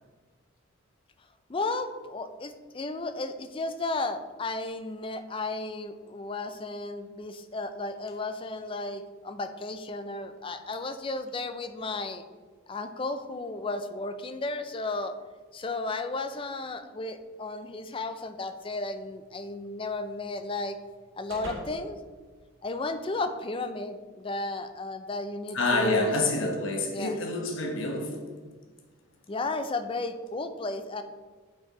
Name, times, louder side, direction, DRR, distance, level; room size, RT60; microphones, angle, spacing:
voice 1, 1.5-12.2 12.7-15.2 15.5-20.8 21.1-22.0 22.6-26.1 26.9-27.2 29.3-31.0, left 2 dB, 25° left, 10 dB, 0.4 m, -34 dB
sound 1, 18.7-23.1, right 1 dB, 70° right, 2.5 m, -48 dB
voice 2, 25.5-28.2, left 2 dB, 65° left, 2 dB, 1.1 m, -27 dB
8.4 x 4.7 x 4.8 m, 1.4 s
head